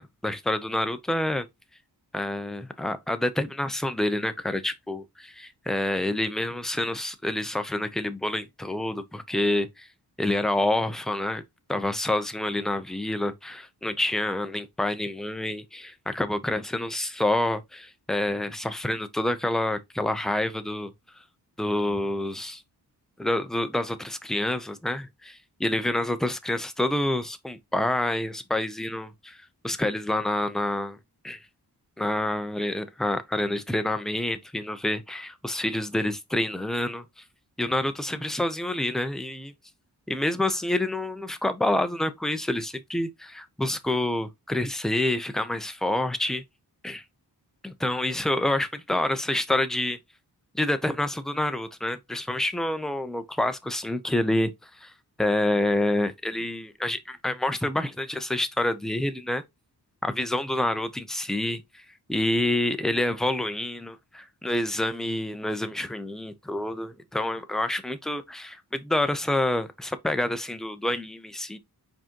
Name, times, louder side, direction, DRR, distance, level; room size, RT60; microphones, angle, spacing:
voice 1, 0.0-1.5 2.1-9.9 10.2-11.4 11.7-20.9 21.6-22.6 23.2-29.4 29.6-31.0 31.2-31.4 32.0-37.0 37.6-39.5 40.1-46.4 46.8-47.0 47.6-50.0 50.5-54.9 55.2-59.4 60.0-71.6, left 1 dB, ahead, 0.6 m, -28 dB
4.8 x 3.8 x 2.9 m
wide cardioid pair, 75°, 40 cm